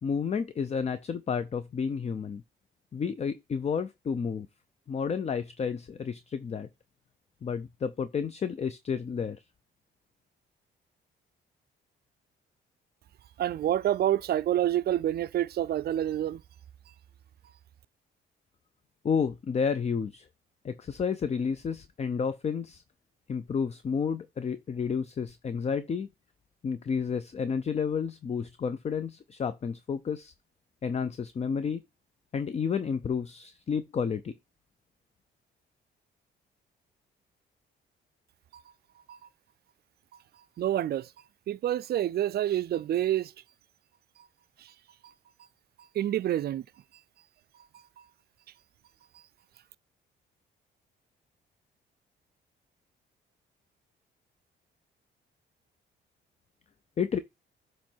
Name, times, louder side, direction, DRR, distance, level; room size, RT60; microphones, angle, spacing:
voice 1, 0.0-2.4 2.9-4.5 4.9-6.7 7.4-9.4 19.0-20.3 20.6-22.8 23.3-26.1 26.6-30.3 30.8-31.8 32.3-34.3 57.0-57.2, left 6 dB, 35° left, 0.5 m, -31 dB
voice 2, 13.4-16.4 38.5-38.6 39.1-39.2 40.6-41.1 41.5-43.3 44.6-44.7 45.9-46.7, right 12 dB, 55° right, 0.4 m, -28 dB
7.4 x 3.1 x 4.4 m
cardioid pair, 90°, 20 cm